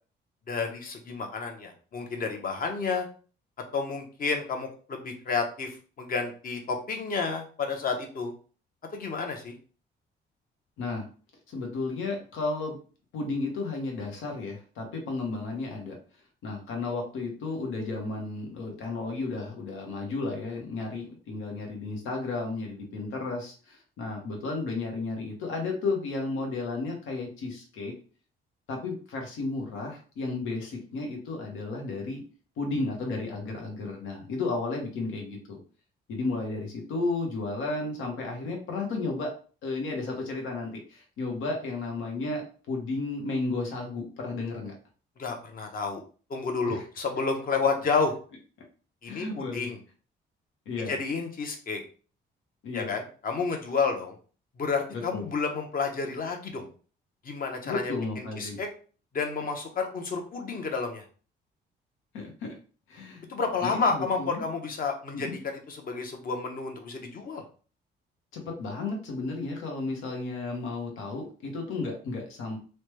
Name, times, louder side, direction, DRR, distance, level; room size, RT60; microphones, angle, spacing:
voice 1, 0.5-3.1 3.7-8.3 8.9-9.5 45.2-46.0 46.3-48.1 49.0-49.8 50.9-51.8 52.7-54.2 54.6-56.7 57.2-58.7 59.1-61.0 63.3-67.4, left 4 dB, 45° left, 3 dB, 0.8 m, -30 dB
voice 2, 11.5-12.8 13.1-16.0 16.4-27.9 28.7-32.2 32.6-35.6 36.1-39.3 39.6-44.7 46.7-46.8 49.1-49.7 50.7-51.0 52.6-52.9 54.9-55.3 57.6-58.6 62.1-62.5 62.9-63.2 63.6-64.4 65.1-65.3 68.3-72.6, left 3 dB, 90° left, 1 dB, 1.0 m, -33 dB
3.2 x 2.2 x 3.1 m, 0.39 s
cardioid pair, 90°, 20 cm